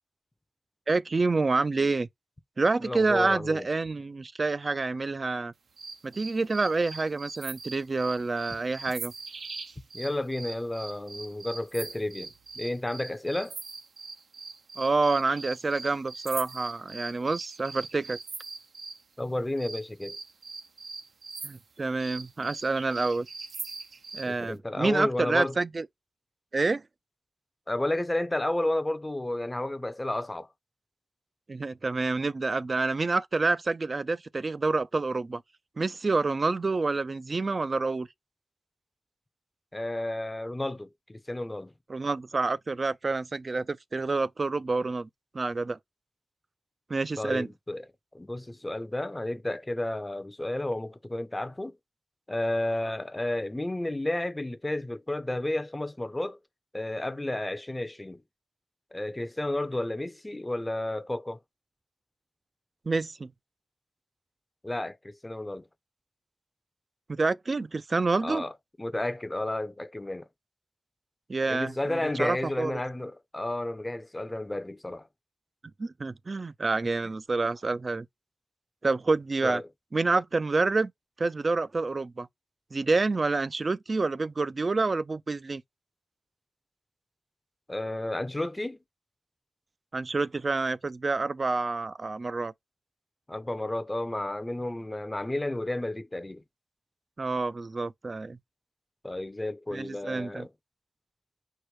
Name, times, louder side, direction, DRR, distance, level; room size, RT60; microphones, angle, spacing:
voice 1, 0.9-2.1 2.6-5.5 6.0-9.1 14.8-18.2 21.4-23.3 24.1-25.9 26.5-26.8 31.5-35.4 35.8-38.1 41.9-45.1 45.3-45.8 46.9-47.5 62.9-63.3 67.1-68.4 71.3-72.8 75.8-78.1 78.8-79.6 79.9-80.9 81.2-82.3 82.7-85.6 89.9-92.5 97.2-98.4 99.7-100.5, right 3 dB, 40° right, 0.4 m, -28 dB
voice 2, 2.8-3.7 9.9-13.6 19.2-20.2 24.2-25.5 27.7-30.5 39.7-41.7 47.2-47.9 48.1-51.8 52.3-56.4 56.7-58.2 58.9-61.4 64.6-65.7 68.2-68.5 68.8-70.3 71.5-75.1 79.4-79.7 87.7-88.8 93.3-96.4 99.0-100.5, left 1 dB, 20° left, 0.6 m, -32 dB
sound 1, 5.8-19.0 19.6-24.3, right 4 dB, 75° right, 0.7 m, -42 dB
4.7 x 2.1 x 4.6 m
wide cardioid pair, 90°, 0 cm